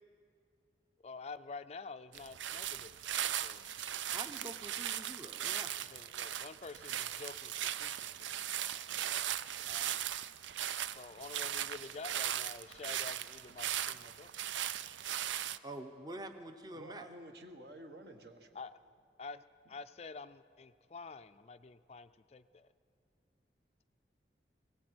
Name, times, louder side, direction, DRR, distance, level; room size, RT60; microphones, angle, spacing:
voice 1, 1.0-3.0 3.2-3.6 5.9-8.3 9.7-9.9 10.9-14.3 18.5-18.7 19.2-22.7, left 4 dB, 35° left, 12 dB, 0.4 m, -48 dB
sound 1, 2.1-15.6, right 11 dB, 85° right, 0.5 m, -38 dB
voice 2, 4.1-5.7 15.6-17.1, right 1 dB, 20° right, 7 dB, 0.8 m, -46 dB
voice 3, 16.7-18.6, right 1 dB, 60° right, 5 dB, 1.7 m, -51 dB
20.5 x 18.5 x 7.9 m, 2.3 s
head